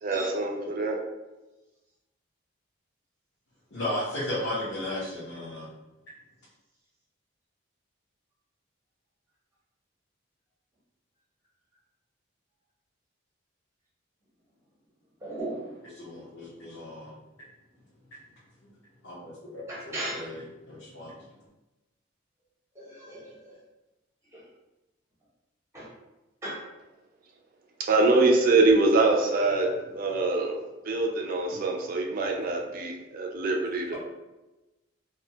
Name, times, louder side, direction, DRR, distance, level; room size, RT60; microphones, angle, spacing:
voice 1, 0.0-1.0 27.9-29.7 30.0-30.6 30.8-33.9, right 3 dB, 45° right, 1 dB, 0.4 m, -24 dB
voice 2, 3.7-5.7 15.8-17.1 19.0-21.1, left 1 dB, 90° left, -10 dB, 0.9 m, -35 dB
voice 3, 15.2-15.7 19.7-20.2 22.8-23.5 24.3-24.4 25.7-25.9 26.4-26.6, right 1 dB, 15° right, -6 dB, 0.7 m, -36 dB
2.6 x 2.2 x 2.7 m, 1.0 s
head